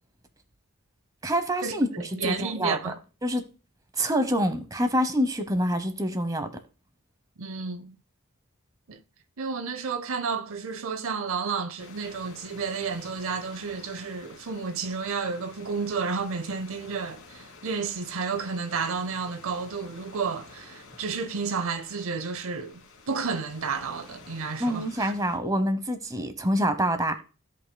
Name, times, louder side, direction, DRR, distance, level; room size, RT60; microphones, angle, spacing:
voice 1, 1.2-2.8 3.2-3.4 4.0-6.5 24.6-27.2, equal, 15° right, 0.9 m, -26 dB
voice 2, 2.2-2.9 7.4-7.9 8.9-9.0 9.4-25.1, right 5 dB, 65° right, 0.6 m, -31 dB
sound 1, 11.8-25.4, left 3 dB, 70° left, 2.5 m, -50 dB
16.0 x 5.7 x 2.2 m
head